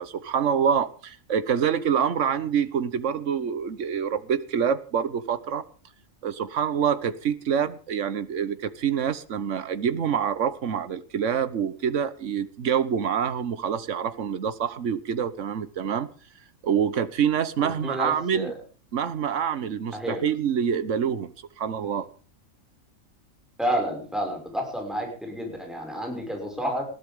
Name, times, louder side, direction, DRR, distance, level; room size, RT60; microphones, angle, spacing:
voice 1, 0.0-5.6 6.2-16.1 16.6-18.5 18.9-22.1, right 8 dB, 60° right, 14 dB, 1.4 m, -26 dB
voice 2, 17.6-18.5 19.9-20.2 23.6-26.9, equal, ahead, 1 dB, 5.8 m, -30 dB
20.5 x 15.5 x 3.7 m, 0.37 s
omnidirectional pair, 1.4 m